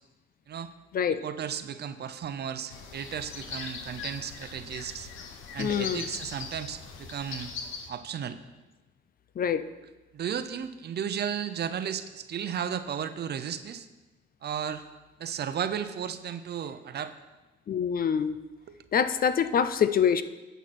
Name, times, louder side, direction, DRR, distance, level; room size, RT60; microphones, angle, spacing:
voice 1, 1.1-5.1 5.5-7.5 7.9-8.4 10.1-13.9 14.4-14.8 15.2-17.1 18.7-18.8, right 8 dB, 55° right, 11 dB, 0.7 m, -34 dB
sound 1, 2.7-7.9, left 5 dB, 85° left, 1.1 m, -40 dB
voice 2, 5.6-6.1 9.4-9.7 17.7-18.4 18.9-20.2, left 7 dB, 45° left, 12 dB, 0.6 m, -25 dB
10.5 x 8.1 x 4.3 m, 1.2 s
cardioid pair, 90°, 20 cm